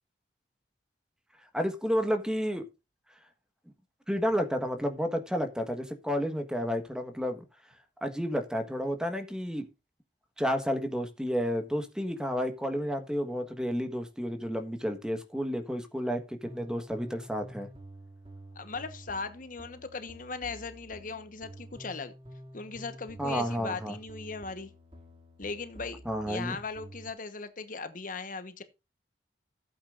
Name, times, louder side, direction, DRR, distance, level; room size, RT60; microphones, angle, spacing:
voice 1, 1.5-2.6 4.1-7.4 8.0-9.7 10.4-17.7 23.2-23.9 26.0-26.6, equal, 5° right, 1.5 m, -31 dB
sound 1, 16.4-27.1, right 1 dB, 30° right, 2.5 m, -49 dB
voice 2, 18.5-22.1 22.5-24.7 25.4-26.0 26.3-28.6, left 4 dB, 50° left, 1.2 m, -38 dB
15.0 x 8.6 x 2.6 m
head